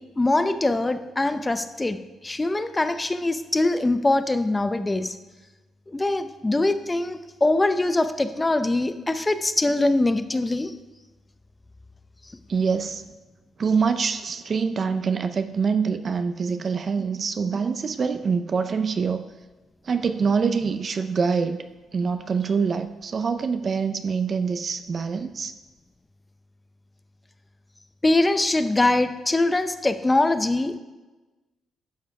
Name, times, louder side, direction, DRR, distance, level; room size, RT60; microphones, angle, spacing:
voice 1, 0.0-5.2 5.9-10.7 28.0-30.8, left 2 dB, 15° left, 11 dB, 0.6 m, -23 dB
voice 2, 12.5-13.0 13.6-19.2 19.8-21.6 21.9-25.5, right 5 dB, 45° right, 9 dB, 0.5 m, -25 dB
12.0 x 5.5 x 4.7 m, 1.2 s
cardioid pair, 90°, 0 cm